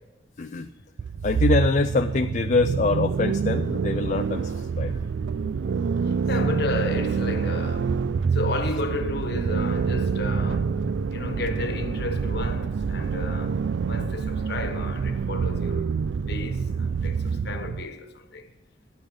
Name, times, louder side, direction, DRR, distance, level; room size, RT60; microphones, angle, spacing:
voice 1, 0.4-0.7 1.2-5.0, left 3 dB, 40° left, 0.4 m, -24 dB
sound 1, 1.0-17.9, right 5 dB, 70° right, 0.4 m, -26 dB
voice 2, 6.1-13.6 13.9-15.9 16.3-18.5, left 2 dB, 60° left, 1.3 m, -32 dB
16.5 x 10.5 x 3.6 m
head